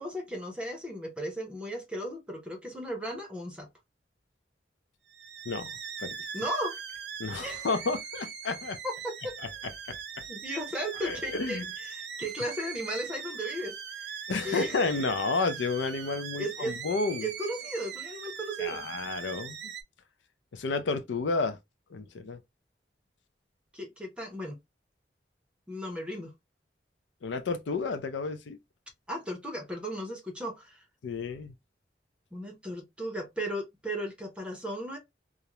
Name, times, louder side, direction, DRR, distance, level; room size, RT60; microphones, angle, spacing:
voice 1, 0.0-3.7 6.3-6.8 7.4-7.7 8.8-9.4 10.3-14.2 14.4-14.9 16.4-16.8 17.2-18.9 23.7-24.6 25.7-26.4 29.1-30.8 32.3-35.0, right 1 dB, 5° right, 0.6 m, -36 dB
sound 1, 5.1-19.8, right 7 dB, 65° right, 0.5 m, -41 dB
voice 2, 7.2-8.8 9.9-10.0 11.0-11.6 14.3-17.3 18.6-19.7 20.5-21.6 21.9-22.4 27.2-28.6 31.0-31.5, left 4 dB, 85° left, 0.4 m, -31 dB
2.4 x 2.0 x 2.9 m
head